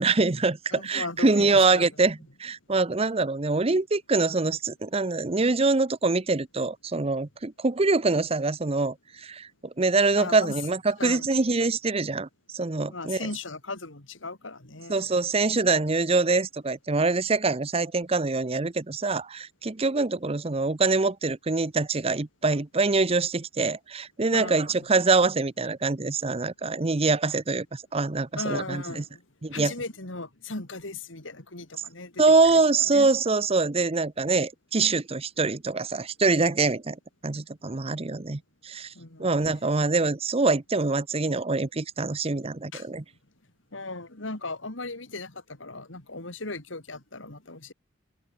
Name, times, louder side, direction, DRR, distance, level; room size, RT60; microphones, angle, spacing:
voice 1, 0.0-12.3 12.5-13.2 14.9-29.0 29.4-29.7 32.2-37.0 37.2-38.9 39.2-43.0, right 3 dB, 30° right, 0.8 m, -24 dB
voice 2, 0.7-1.9 10.2-10.6 11.0-11.3 12.9-15.0 24.3-24.7 28.4-29.2 29.5-33.1 39.0-39.3 42.7-42.9 43.7-47.7, left 3 dB, 80° left, 3.7 m, -37 dB
head